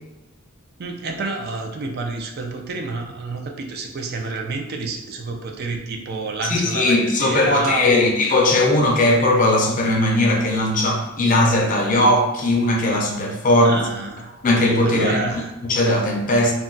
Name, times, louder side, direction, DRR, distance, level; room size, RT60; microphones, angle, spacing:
voice 1, 0.8-8.1 13.6-14.5 14.8-15.6, right 3 dB, 50° right, 3 dB, 0.4 m, -28 dB
voice 2, 6.5-13.7 14.4-15.2 15.6-16.5, left 1 dB, 40° left, 0 dB, 0.5 m, -18 dB
2.4 x 2.2 x 3.8 m, 0.99 s
head